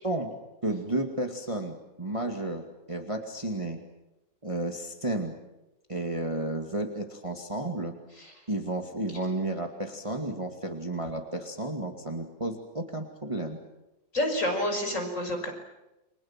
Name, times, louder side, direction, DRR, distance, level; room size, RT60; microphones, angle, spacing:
voice 1, 0.6-3.8 4.4-5.3 5.9-8.0 8.5-13.6, right 1 dB, 15° right, 4 dB, 2.3 m, -32 dB
voice 2, 14.1-15.5, left 1 dB, 40° left, 3 dB, 6.2 m, -29 dB
29.5 x 24.5 x 7.5 m, 0.96 s
omnidirectional pair, 2.1 m